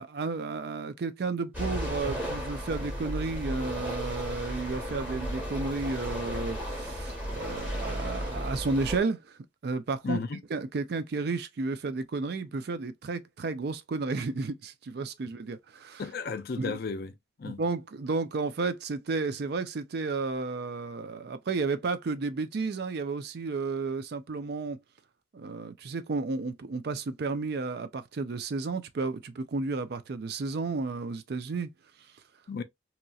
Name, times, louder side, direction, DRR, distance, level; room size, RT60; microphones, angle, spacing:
voice 1, 0.0-9.4 9.6-10.2 10.5-16.0 16.6-16.8 17.4-24.8 25.3-31.7, right 3 dB, 55° right, 0.4 m, -32 dB
sound 1, 1.5-9.0, equal, 10° right, 1.1 m, -34 dB
voice 2, 10.0-10.4 16.0-17.1 17.4-17.6 32.5-32.6, left 4 dB, 50° left, 0.4 m, -33 dB
2.9 x 2.7 x 2.3 m
head